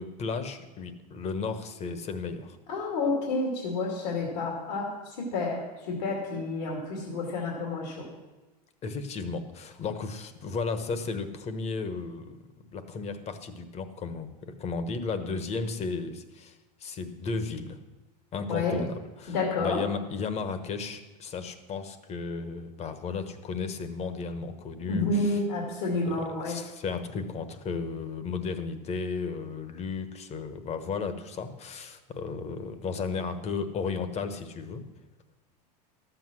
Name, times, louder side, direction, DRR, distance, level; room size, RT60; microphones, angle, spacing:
voice 1, 0.0-2.6 8.8-12.4 12.7-17.8 18.3-25.4 25.9-26.0 26.3-34.8, left 4 dB, 30° left, 10 dB, 1.1 m, -34 dB
voice 2, 2.7-8.1 18.5-18.8 19.3-19.8 24.9-26.6, left 3 dB, 85° left, -1 dB, 2.6 m, -30 dB
12.0 x 7.9 x 6.2 m, 1.1 s
supercardioid pair, 120°, 21 cm